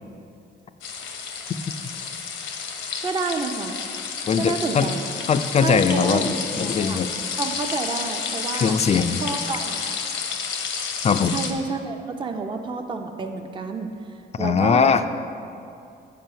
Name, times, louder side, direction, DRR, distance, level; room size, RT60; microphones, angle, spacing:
sound 1, 0.8-11.5, left 6 dB, 75° left, 0.8 m, -30 dB
voice 1, 3.0-3.8 4.4-5.0 5.6-7.0 7.4-8.7 9.2-9.8 11.3-13.9 14.4-14.9, right 4 dB, 25° right, 4 dB, 0.5 m, -29 dB
voice 2, 4.3-4.9 5.3-7.1 8.5-9.2 11.0-11.4 14.4-15.0, left 6 dB, 35° left, 10 dB, 0.4 m, -21 dB
7.5 x 4.8 x 5.7 m, 2.6 s
cardioid pair, 90°, 20 cm